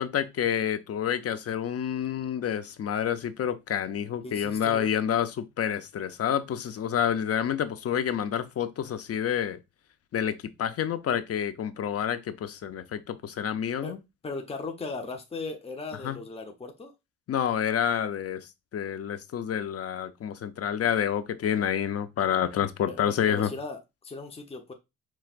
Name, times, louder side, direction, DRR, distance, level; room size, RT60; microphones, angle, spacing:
voice 1, 0.0-9.6 10.1-14.0 16.0-16.2 17.3-23.5, left 9 dB, 50° left, 0.7 m, -28 dB
voice 2, 4.2-4.9 13.8-13.9 14.2-16.9 22.9-24.7, left 3 dB, 20° left, 0.9 m, -37 dB
5.8 x 3.1 x 2.5 m
cardioid pair, 90°, 30 cm